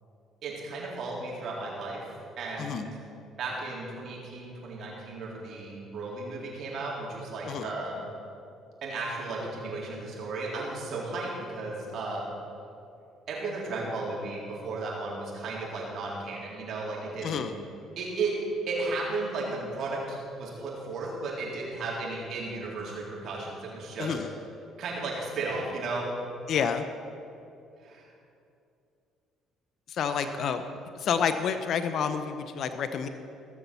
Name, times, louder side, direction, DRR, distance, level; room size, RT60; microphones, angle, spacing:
voice 1, 0.4-2.1 2.4-2.9 3.4-8.0 8.8-12.2 13.3-17.4 18.0-18.3 18.7-24.1 24.8-26.1 27.8-28.1 30.1-30.3, right 3 dB, 60° right, -3 dB, 3.9 m, -34 dB
voice 2, 2.6-2.9 7.5-7.7 17.2-17.5 24.0-24.3 26.5-26.9 29.9-30.6 30.9-33.1, left 7 dB, 60° left, 9 dB, 0.7 m, -29 dB
17.0 x 7.0 x 7.0 m, 2.7 s
supercardioid pair, 80°, 0 cm